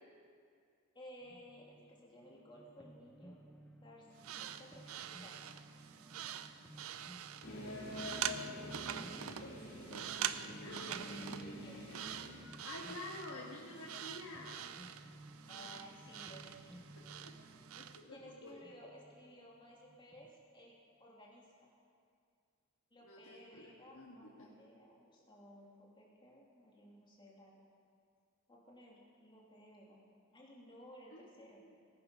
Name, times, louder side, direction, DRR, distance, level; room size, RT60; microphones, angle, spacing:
voice 1, 0.9-3.4 3.8-5.6 10.9-11.9 15.5-16.8 18.1-21.7 22.9-27.6 28.5-30.0 30.3-31.7, equal, 25° left, -3 dB, 2.7 m, -57 dB
sound 1, 1.2-20.3, right 1 dB, 5° left, 1.0 m, -58 dB
sound 2, 4.2-18.0, right 10 dB, 75° right, 0.5 m, -45 dB
sound 3, 7.4-12.5, equal, 90° left, 2.4 m, -48 dB
voice 2, 7.6-10.1 10.6-11.0 12.6-14.7 17.2-17.3 17.7-18.6 23.0-24.5 31.1-31.7, left 3 dB, 70° left, -5 dB, 1.7 m, -49 dB
18.0 x 10.0 x 5.7 m, 2.2 s
head